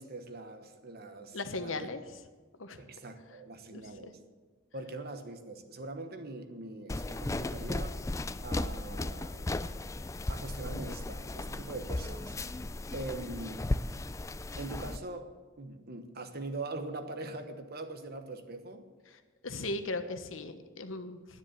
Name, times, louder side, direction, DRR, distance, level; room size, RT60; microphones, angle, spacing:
voice 1, 0.0-1.9 2.8-4.2 4.7-8.1 8.4-9.5 10.3-12.4 12.9-13.7 14.6-18.9, right 2 dB, 50° right, 8 dB, 1.2 m, -42 dB
voice 2, 1.3-2.0 2.6-2.8 3.7-4.1 19.4-21.4, left 2 dB, 80° left, 9 dB, 1.1 m, -37 dB
sound 1, 6.9-15.0, left 2 dB, 15° left, 0.4 m, -36 dB
10.5 x 9.7 x 8.1 m, 1.5 s
head